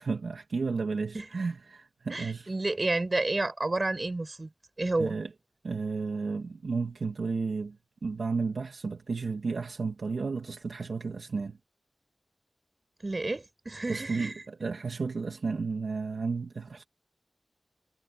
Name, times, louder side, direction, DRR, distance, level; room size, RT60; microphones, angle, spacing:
voice 1, 0.0-2.5 5.0-5.3 5.6-7.8 8.0-11.6 13.9-14.3 14.6-16.9, right 4 dB, 85° right, 2.8 m, -32 dB
voice 2, 2.1-4.5 4.8-5.2 13.0-14.4, right 2 dB, 45° right, 5.9 m, -30 dB
wide cardioid pair, 55°, 0 cm